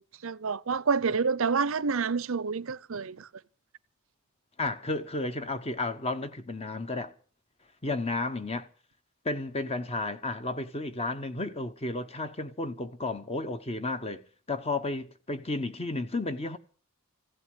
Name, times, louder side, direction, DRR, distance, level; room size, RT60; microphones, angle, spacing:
voice 1, 0.0-3.3, right 5 dB, 65° right, 0.6 m, -28 dB
voice 2, 4.6-7.1 7.8-8.7 9.2-14.2 14.5-16.6, left 2 dB, 25° left, 1.1 m, -32 dB
16.0 x 8.0 x 9.6 m
head